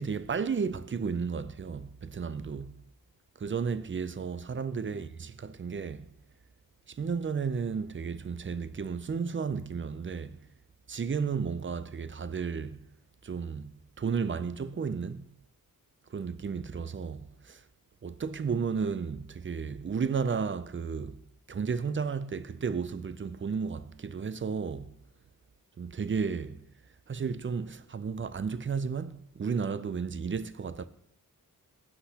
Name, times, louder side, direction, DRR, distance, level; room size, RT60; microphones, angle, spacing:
voice 1, 0.0-2.8 3.4-6.1 6.9-10.4 10.9-12.8 13.2-13.7 14.0-15.3 16.1-17.6 18.0-21.2 21.5-24.9 25.8-26.6 27.1-30.9, right 5 dB, 35° right, 0.4 m, -33 dB
15.0 x 8.1 x 2.9 m
wide cardioid pair, 115°, 36 cm